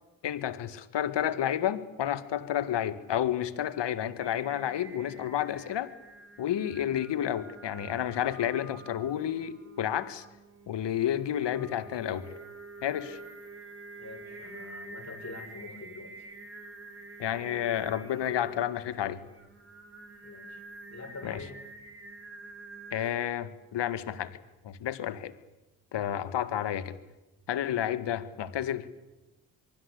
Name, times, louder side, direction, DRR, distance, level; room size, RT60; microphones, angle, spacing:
voice 1, 0.2-5.9 6.4-10.3 10.7-12.3 12.8-13.2 17.2-19.2 21.2-21.4 22.9-24.3 24.6-25.3 25.9-26.9 27.5-28.9, left 10 dB, 60° left, 13 dB, 2.0 m, -30 dB
Singing, 4.2-23.1, right 3 dB, 25° right, 4.8 m, -48 dB
voice 2, 14.0-16.1 20.2-20.6 20.9-21.6, left 3 dB, 35° left, 4 dB, 7.0 m, -45 dB
24.0 x 23.5 x 8.3 m, 1.0 s
hypercardioid pair, 45°, 49 cm